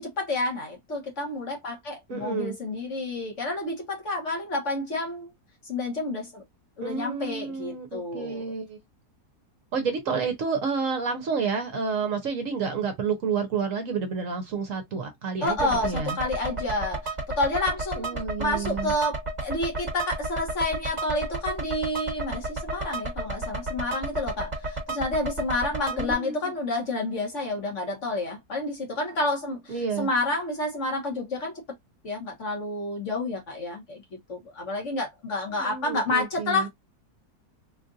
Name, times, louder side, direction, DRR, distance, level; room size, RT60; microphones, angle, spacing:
voice 1, 0.0-5.3 5.6-6.4 6.8-8.5 15.4-31.6 32.0-34.0 34.3-36.7, left 2 dB, 50° left, 1.5 m, -29 dB
voice 2, 2.1-2.5 6.8-8.8 9.7-16.2 18.0-18.9 25.9-26.5 29.7-30.1 35.6-36.7, right 5 dB, 60° right, 1.0 m, -30 dB
sound 1, 15.5-26.1, right 2 dB, 30° right, 1.4 m, -33 dB
3.8 x 2.5 x 2.6 m
omnidirectional pair, 1.7 m